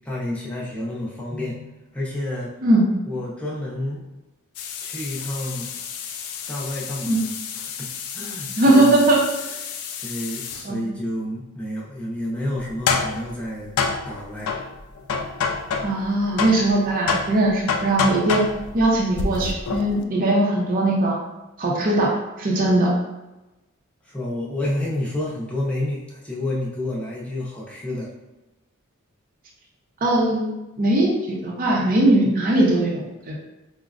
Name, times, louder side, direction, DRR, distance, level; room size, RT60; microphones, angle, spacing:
voice 1, 0.0-2.5 3.1-4.0 4.8-5.7 6.5-7.3 7.6-9.0 10.0-13.7 14.1-14.5 24.0-28.1, left 1 dB, 5° left, -6 dB, 0.7 m, -30 dB
sound 1, 4.6-10.7 12.6-16.1 16.4-20.0, left 5 dB, 85° left, 0.4 m, -29 dB
voice 2, 8.6-9.2 10.6-10.8 15.8-18.4 18.7-21.2 21.6-22.9 30.0-30.5 30.8-33.4, right 1 dB, 40° right, -2 dB, 0.5 m, -20 dB
4.9 x 2.1 x 2.4 m, 1.0 s
head